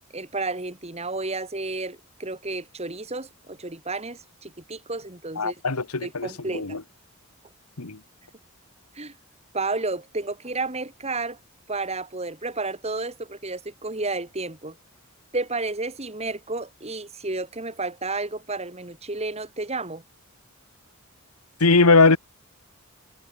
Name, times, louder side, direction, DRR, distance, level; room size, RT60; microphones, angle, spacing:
voice 1, 0.1-5.6 6.0-6.8 8.9-9.2 9.5-11.4 11.7-14.8 15.3-20.0, right 3 dB, 30° right, 2.3 m, -31 dB
voice 2, 5.4-6.3 6.5-6.8 7.8-8.0 21.6-22.2, left 3 dB, 85° left, 1.7 m, -19 dB
head